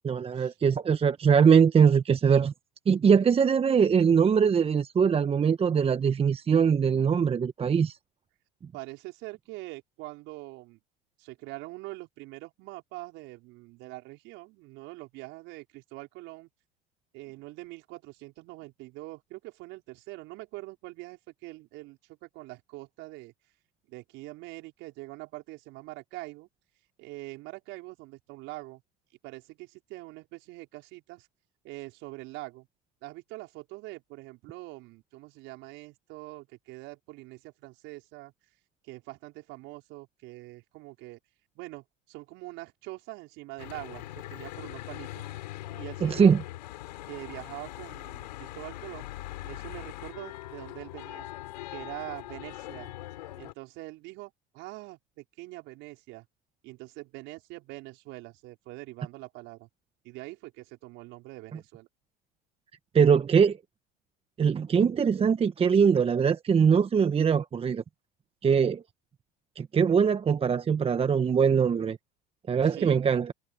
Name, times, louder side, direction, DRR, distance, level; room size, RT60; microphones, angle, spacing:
voice 1, 0.0-2.5 2.9-8.0 46.0-46.4 62.9-63.6 64.4-67.8 68.4-68.8 69.6-72.0 72.5-73.3, right 6 dB, 25° right, 1.2 m, -22 dB
voice 2, 8.7-10.8 11.2-16.5 17.1-23.3 23.9-26.5 27.0-28.8 29.2-31.3 31.6-32.7 33.0-38.3 38.8-41.2 41.6-45.3 45.7-46.4 47.1-49.1 49.4-51.3 51.7-52.9 53.4-56.3 56.6-59.7 60.0-61.9 72.6-73.0, right 21 dB, 65° right, 5.3 m, -44 dB
Church bell / Traffic noise roadway noise, 43.6-53.5, left 16 dB, 85° left, 6.0 m, -41 dB
hypercardioid pair, 85°, 21 cm